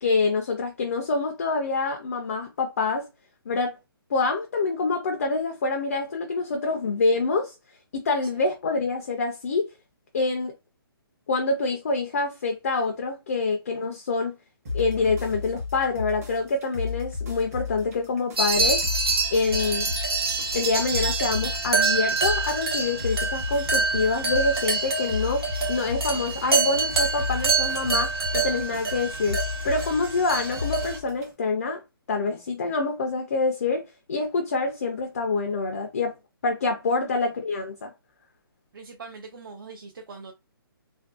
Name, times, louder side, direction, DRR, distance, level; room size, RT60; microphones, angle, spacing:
voice 1, 0.0-3.1 3.5-3.8 4.1-7.5 7.9-9.7 10.1-10.5 11.3-14.3 14.7-18.8 19.3-20.0 20.5-29.4 29.6-31.8 32.1-33.8 34.1-36.1 36.4-37.9, left 3 dB, 40° left, 0.4 m, -26 dB
sound 1, 14.7-31.3, left 5 dB, 40° right, 0.9 m, -34 dB
sound 2, 18.4-31.0, right 3 dB, 80° right, 0.9 m, -26 dB
voice 2, 38.7-40.3, right 4 dB, 60° right, 0.5 m, -42 dB
2.5 x 2.2 x 2.3 m
hypercardioid pair, 170°, 13 cm